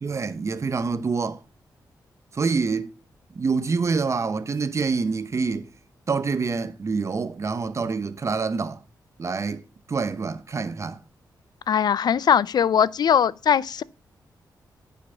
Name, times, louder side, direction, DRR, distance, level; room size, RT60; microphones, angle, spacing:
voice 1, 0.0-1.4 2.3-2.9 3.3-5.7 6.1-8.8 9.2-9.6 9.9-11.0, right 4 dB, 40° right, 1.0 m, -26 dB
voice 2, 11.7-13.8, left 8 dB, 70° left, 0.5 m, -20 dB
10.0 x 5.8 x 7.0 m
wide cardioid pair, 105°, 7 cm